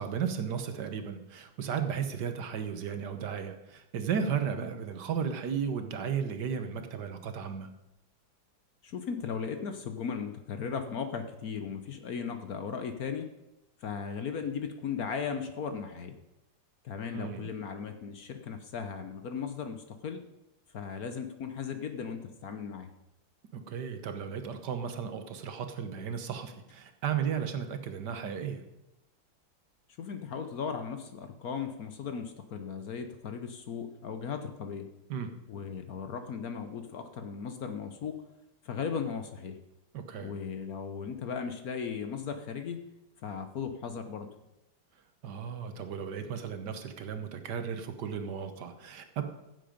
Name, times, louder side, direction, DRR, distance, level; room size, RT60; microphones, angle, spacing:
voice 1, 0.0-7.7 17.1-17.5 23.5-28.6 35.1-35.3 39.9-40.3 45.2-49.2, right 7 dB, 65° right, 8 dB, 1.5 m, -34 dB
voice 2, 8.8-13.3 13.8-16.2 16.8-20.2 20.7-22.9 30.0-34.9 35.5-38.2 38.6-39.6 40.2-42.8 43.2-44.3, left 6 dB, 55° left, 8 dB, 1.2 m, -37 dB
15.0 x 7.8 x 5.1 m, 0.93 s
omnidirectional pair, 2.1 m